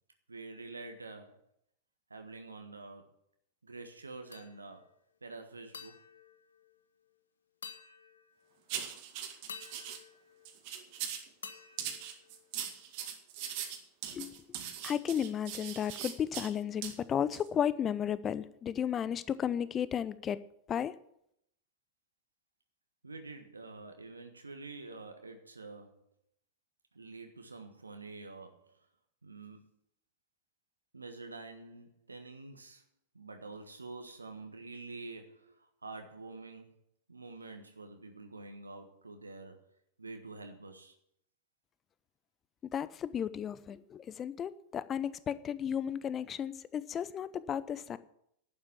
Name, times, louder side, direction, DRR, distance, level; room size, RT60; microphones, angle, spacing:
voice 1, 0.3-1.4 2.1-3.1 3.6-4.9 5.2-6.0 23.0-26.0 26.9-28.9 29.2-29.7 30.9-32.8 33.1-36.8 37.1-39.7 40.0-41.0, right 3 dB, 80° right, 1.4 m, -47 dB
sound 1, 4.3-4.9 5.7-7.2 7.6-8.6 9.5-11.0 11.4-12.8, left 6 dB, 70° left, 1.2 m, -51 dB
sound 2, 8.7-10.0 10.4-11.3 11.8-16.5 16.8-16.9 17.3-17.5, right 9 dB, 45° right, 2.1 m, -40 dB
voice 2, 14.1-14.4 14.8-20.4 20.7-20.9 42.7-48.0, left 9 dB, 25° left, 0.7 m, -34 dB
11.5 x 9.3 x 7.3 m
figure-of-eight pair, 90°, 0 cm